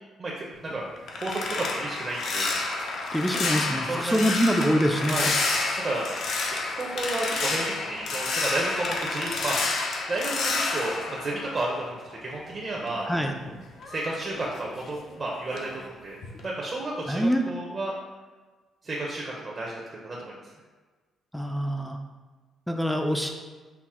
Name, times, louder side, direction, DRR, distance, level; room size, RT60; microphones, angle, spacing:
voice 1, 0.2-0.8 1.2-2.5 3.8-4.3 5.0-5.3 5.8-6.1 6.5-9.6 10.1-13.1 13.9-16.2 16.4-17.9 18.8-20.4, right 2 dB, 40° right, -4 dB, 0.7 m, -32 dB
sound 1, 0.5-12.2 12.5-15.2 15.5-15.8 16.2-16.5, left 3 dB, 70° left, 0.6 m, -30 dB
voice 2, 3.1-5.2 13.1-13.4 17.1-17.4 21.3-22.0 22.7-23.3, equal, ahead, 3 dB, 0.4 m, -25 dB
5.8 x 2.0 x 3.6 m, 1.3 s
cardioid pair, 90°, 0 cm